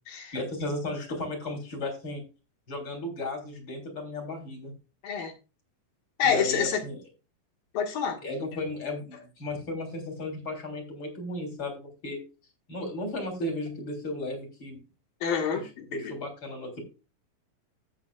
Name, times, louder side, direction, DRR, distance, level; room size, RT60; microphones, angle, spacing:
voice 1, 0.3-2.2 2.7-4.7 6.2-7.0 8.2-12.2 12.7-14.8 15.9-16.8, left 1 dB, 35° left, 2 dB, 3.8 m, -35 dB
voice 2, 6.2-6.8 7.8-8.2 15.2-15.9, left 7 dB, 80° left, 3 dB, 3.3 m, -27 dB
14.5 x 7.7 x 2.4 m, 0.31 s
omnidirectional pair, 4.1 m